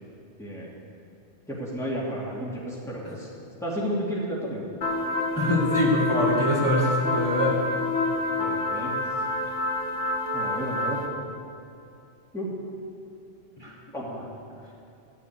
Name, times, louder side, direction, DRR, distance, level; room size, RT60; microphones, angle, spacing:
voice 1, 1.5-3.3 3.6-4.6 8.2-8.9 10.3-11.1 12.3-12.5 13.9-14.3, equal, ahead, -6 dB, 2.5 m, -32 dB
sound 1, 4.8-11.1, left 2 dB, 85° left, 2.0 m, -28 dB
voice 2, 5.4-7.6 13.6-13.7, left 1 dB, 20° left, -5 dB, 2.6 m, -23 dB
13.5 x 7.7 x 9.2 m, 2.6 s
omnidirectional pair, 1.2 m